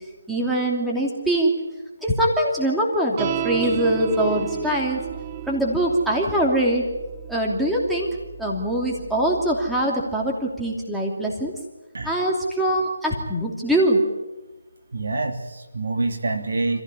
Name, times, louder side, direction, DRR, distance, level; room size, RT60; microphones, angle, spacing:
voice 1, 0.3-1.5 2.0-5.0 5.5-6.9 7.3-8.1 8.4-11.5 12.0-14.0, right 1 dB, ahead, -3 dB, 2.8 m, -22 dB
sound 1, 3.2-9.8, right 11 dB, 25° right, 1.0 m, -33 dB
voice 2, 14.9-16.8, right 3 dB, 65° right, 6 dB, 3.0 m, -26 dB
26.5 x 15.5 x 9.9 m, 1.1 s
figure-of-eight pair, 160°, 0 cm